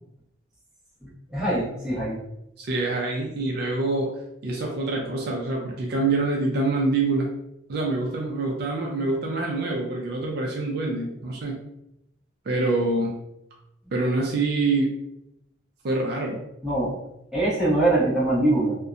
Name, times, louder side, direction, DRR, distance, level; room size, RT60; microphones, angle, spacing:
voice 1, 1.0-2.2 16.6-16.9 17.3-18.8, right 2 dB, 5° right, -9 dB, 0.9 m, -23 dB
voice 2, 2.6-4.1 4.4-7.3 7.7-11.6 12.5-13.2 13.9-14.9 15.8-16.4, right 2 dB, 55° right, -1 dB, 0.4 m, -25 dB
2.7 x 2.1 x 2.4 m, 0.83 s
head